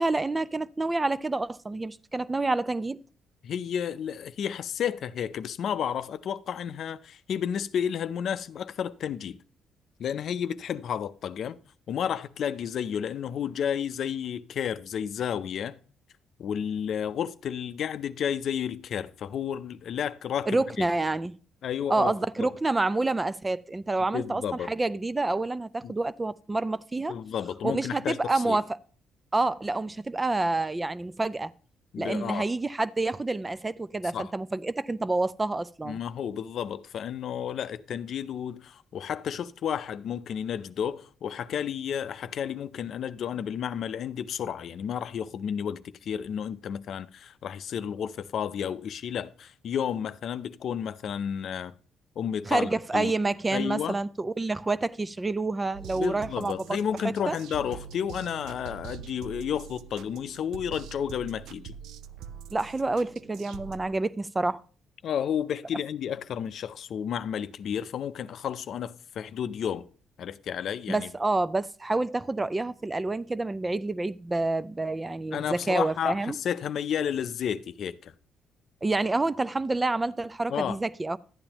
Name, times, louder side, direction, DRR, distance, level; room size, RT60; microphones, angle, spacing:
voice 1, 0.0-3.0 20.5-21.3 21.9-24.4 24.7-27.1 27.6-28.8 29.3-31.5 32.0-36.0 52.5-56.6 57.3-57.4 62.5-64.6 70.9-76.4 78.8-81.2, right 2 dB, 20° right, 0.4 m, -28 dB
voice 2, 3.4-9.4 10.0-11.6 11.9-15.8 16.4-20.9 21.6-22.5 24.1-24.7 25.8-25.9 27.1-28.2 28.4-28.6 31.9-32.5 34.1-34.3 35.8-51.7 52.2-53.1 53.5-54.0 56.0-61.7 65.0-69.9 70.2-71.1 75.3-78.1 80.5-80.8, left 8 dB, 65° left, 0.5 m, -32 dB
sound 1, 55.7-63.9, right 8 dB, 85° right, 0.4 m, -44 dB
12.0 x 8.7 x 2.9 m
cardioid pair, 90°, 0 cm